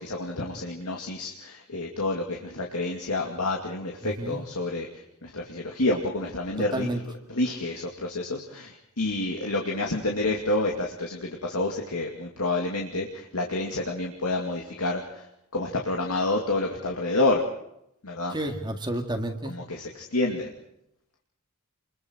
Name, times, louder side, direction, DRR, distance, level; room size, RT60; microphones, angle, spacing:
voice 1, 0.0-6.9 7.3-15.3 15.5-17.4 18.0-18.4 19.4-20.5, left 2 dB, 75° left, 0 dB, 2.5 m, -29 dB
voice 2, 4.0-4.4 6.7-7.0 18.3-19.5, right 1 dB, 20° right, 4 dB, 1.9 m, -30 dB
28.0 x 22.5 x 4.6 m, 0.78 s
head